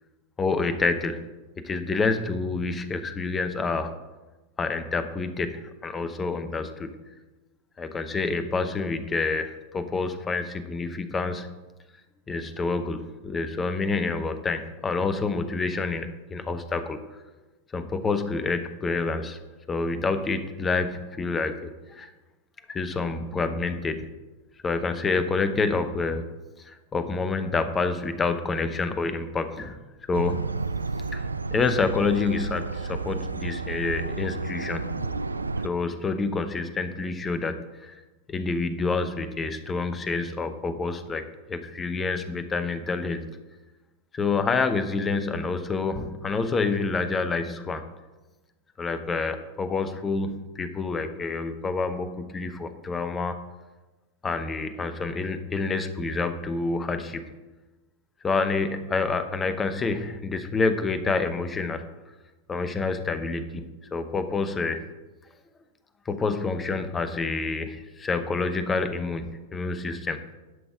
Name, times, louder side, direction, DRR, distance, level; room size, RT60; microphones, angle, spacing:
voice 1, 0.4-1.2 1.6-3.9 4.6-6.9 7.8-11.5 12.3-17.0 17.7-19.4 19.7-22.1 22.7-24.1 24.6-26.2 26.7-29.8 30.1-30.5 31.1-31.2 31.5-35.2 35.6-37.9 38.3-43.3 44.1-47.9 48.8-53.4 54.2-57.2 58.2-61.8 62.5-63.6 63.9-64.8 66.1-70.2, left 4 dB, 20° left, 9 dB, 0.9 m, -28 dB
sound 1, 30.1-35.7, right 3 dB, 80° right, 0.3 m, -31 dB
11.0 x 6.1 x 5.0 m, 1.1 s
figure-of-eight pair, 90°, 0 cm